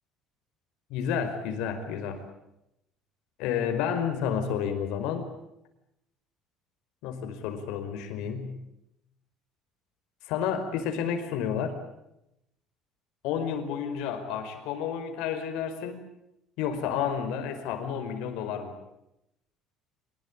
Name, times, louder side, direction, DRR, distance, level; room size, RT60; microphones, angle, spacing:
voice 1, 0.9-2.2 3.4-5.3 7.0-8.6 10.2-11.8 13.2-16.0 16.6-18.7, left 7 dB, 70° left, 7 dB, 5.0 m, -30 dB
25.5 x 21.0 x 8.8 m, 0.84 s
cardioid pair, 170°, 0 cm